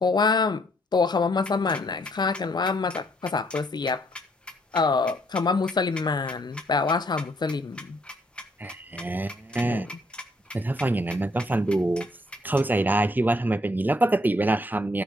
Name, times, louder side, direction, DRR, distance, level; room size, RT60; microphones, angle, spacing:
voice 1, 0.0-4.0 4.7-8.0 9.6-9.8, left 4 dB, 70° left, 0.6 m, -25 dB
sound 1, 1.4-12.6, left 1 dB, 15° left, 1.4 m, -41 dB
voice 2, 8.6-9.9 10.5-12.1 12.4-15.0, right 2 dB, 25° right, 0.5 m, -25 dB
13.0 x 4.9 x 6.6 m
wide cardioid pair, 70°, 7 cm